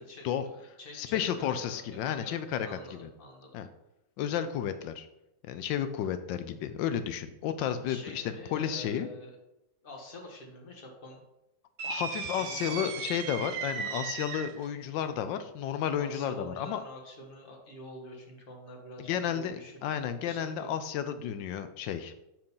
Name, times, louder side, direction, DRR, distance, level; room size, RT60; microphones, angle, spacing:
voice 1, 0.0-2.4 2.6-3.5 7.9-9.4 9.8-11.2 12.3-13.0 16.0-19.7 20.2-20.7, left 1 dB, 30° left, 0 dB, 1.6 m, -47 dB
voice 2, 0.9-3.1 3.5-3.7 4.2-5.1 5.4-9.1 11.8-16.8 19.0-22.1, left 9 dB, 90° left, 10 dB, 1.3 m, -32 dB
Drum, 1.1-3.1, left 7 dB, 60° left, 1.1 m, -53 dB
sound 1, 11.8-14.7, right 7 dB, 70° right, 1.3 m, -36 dB
7.6 x 4.4 x 5.5 m, 0.90 s
omnidirectional pair, 1.9 m